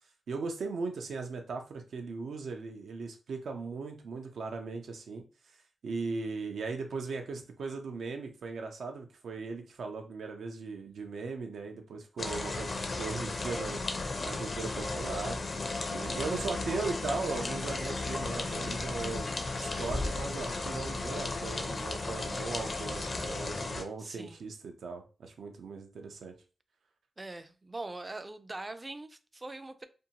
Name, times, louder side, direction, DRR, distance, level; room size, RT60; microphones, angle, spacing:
voice 1, 0.3-5.2 5.8-13.8 14.2-15.4 15.9-19.3 19.6-26.3, right 4 dB, 90° right, 0.5 m, -38 dB
sound 1, 12.2-23.8, left 2 dB, 50° left, 0.5 m, -35 dB
voice 2, 16.2-16.5 24.0-24.4 27.2-29.9, right 2 dB, 25° right, 0.3 m, -42 dB
2.6 x 2.2 x 2.8 m
cardioid pair, 80°, 0 cm